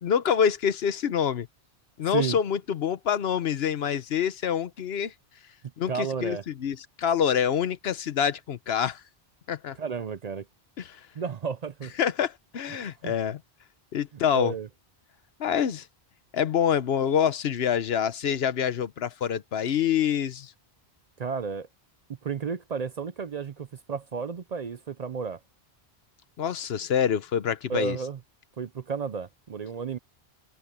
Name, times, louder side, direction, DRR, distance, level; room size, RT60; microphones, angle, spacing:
voice 1, 0.0-1.5 2.0-5.1 5.8-9.0 9.5-9.8 10.8-10.9 12.0-13.4 13.9-14.5 15.4-15.9 16.3-20.5 26.4-28.0, left 8 dB, 75° left, 1.0 m, -26 dB
voice 2, 5.9-6.4 9.7-10.5 11.1-11.9 12.7-12.8 13.0-13.1 14.1-14.7 21.2-21.7 22.2-25.4 27.7-28.2 28.6-30.0, right 6 dB, 50° right, 0.6 m, -32 dB
omnidirectional pair, 1.1 m